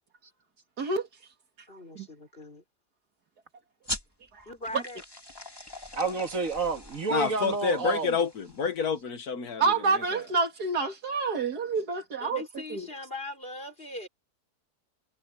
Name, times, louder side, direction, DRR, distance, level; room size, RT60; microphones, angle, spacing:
voice 1, 1.7-2.6 4.4-5.0 12.2-14.1, left 2 dB, 35° left, 5.1 m, -40 dB
sound 1, 3.8-8.9, left 1 dB, 15° left, 2.9 m, -42 dB
voice 2, 5.9-8.2, right 4 dB, 60° right, 2.1 m, -29 dB
voice 3, 7.1-10.2, left 5 dB, 70° left, 1.8 m, -29 dB
voice 4, 9.6-12.4 12.7-12.9, right 4 dB, 80° right, 2.7 m, -28 dB
omnidirectional pair, 1.6 m